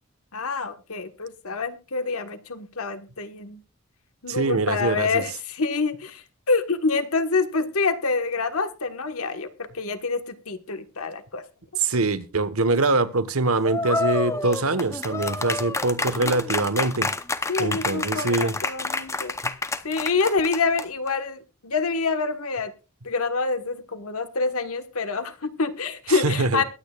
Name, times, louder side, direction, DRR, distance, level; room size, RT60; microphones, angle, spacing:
voice 1, 0.3-3.6 4.2-11.4 16.1-16.5 17.5-19.3 19.8-22.7 23.0-26.6, left 4 dB, 80° left, 1.4 m, -27 dB
voice 2, 4.3-5.2 11.8-17.1 17.6-18.6 19.4-19.5 26.1-26.6, right 3 dB, 75° right, 1.3 m, -24 dB
sound 1, 13.6-21.1, left 3 dB, 15° left, 0.7 m, -28 dB
22.5 x 8.8 x 2.4 m
head